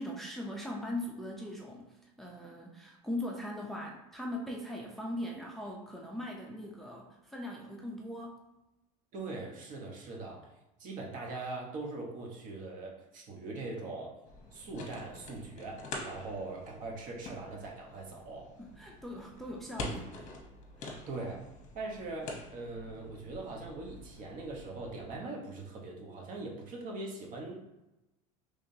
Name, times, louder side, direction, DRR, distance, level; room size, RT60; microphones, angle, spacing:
voice 1, 0.0-8.4 18.6-20.3 20.8-21.0, left 1 dB, ahead, -1 dB, 0.5 m, -40 dB
voice 2, 9.1-10.5 10.8-14.2 14.5-18.5 21.1-21.4 21.7-27.6, right 3 dB, 50° right, 0 dB, 1.0 m, -41 dB
sound 1, 14.3-25.2, left 2 dB, 45° left, 0.9 m, -46 dB
3.6 x 3.3 x 2.7 m, 0.97 s
supercardioid pair, 105°, 18 cm